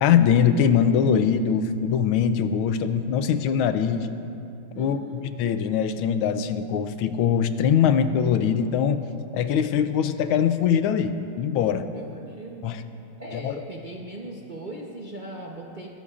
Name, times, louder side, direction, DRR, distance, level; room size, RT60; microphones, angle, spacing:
voice 1, 0.0-4.1 4.8-9.0 9.3-11.9 12.6-12.8 13.3-13.6, left 7 dB, 90° left, 10 dB, 1.5 m, -22 dB
voice 2, 4.7-5.3 11.9-12.7 13.2-15.9, right 1 dB, 45° right, -2 dB, 0.6 m, -38 dB
21.0 x 16.5 x 2.5 m, 2.7 s
omnidirectional pair, 2.2 m